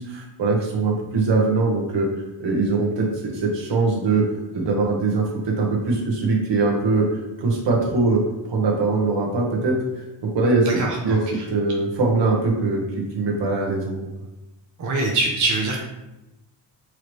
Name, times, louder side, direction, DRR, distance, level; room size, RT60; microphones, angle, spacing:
voice 1, 0.0-2.1 2.4-4.3 4.5-11.2 11.5-14.1, right 3 dB, 70° right, -1 dB, 1.3 m, -22 dB
voice 2, 10.6-11.5 14.8-15.8, right 3 dB, 40° right, -1 dB, 0.7 m, -24 dB
4.7 x 3.2 x 3.2 m, 0.96 s
cardioid pair, 115°, 45 cm